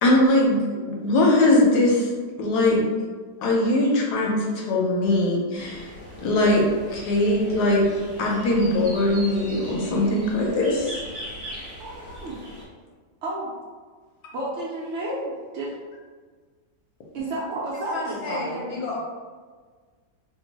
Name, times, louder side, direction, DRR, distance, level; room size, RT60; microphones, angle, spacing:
voice 1, 0.0-2.1 2.4-2.9 3.4-5.9 6.2-7.9 8.2-11.0, left 1 dB, 70° left, -2 dB, 1.1 m, -21 dB
sound 1, 5.6-12.6, equal, 40° right, 0.6 m, -40 dB
voice 2, 11.8-12.4 13.2-13.5 14.3-15.7 17.1-18.6, right 1 dB, 85° right, -5 dB, 0.6 m, -31 dB
voice 3, 17.9-19.0, left 3 dB, 45° left, -5 dB, 0.8 m, -31 dB
2.9 x 2.2 x 3.9 m, 1.5 s
omnidirectional pair, 1.9 m